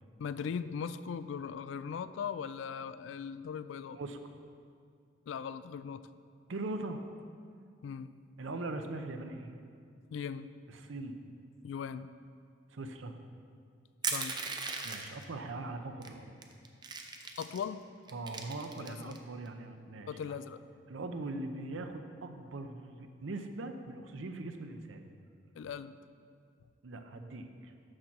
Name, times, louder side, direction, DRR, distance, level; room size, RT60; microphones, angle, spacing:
voice 1, 0.2-4.0 5.3-6.0 7.8-8.1 10.1-10.5 11.6-12.1 14.1-14.4 17.4-17.8 18.8-19.2 20.1-20.6 25.5-26.0, left 7 dB, 75° left, 14 dB, 0.3 m, -39 dB
voice 2, 6.5-7.0 8.4-9.6 10.7-11.2 12.7-13.2 14.8-16.3 18.1-20.2 20.9-25.1 26.8-27.7, right 2 dB, 80° right, 6 dB, 0.6 m, -41 dB
Crushing, 14.0-15.2 16.0-16.1 16.4-17.6 18.1-19.2, right 4 dB, 25° right, 0.5 m, -37 dB
6.5 x 6.0 x 5.8 m, 2.3 s
head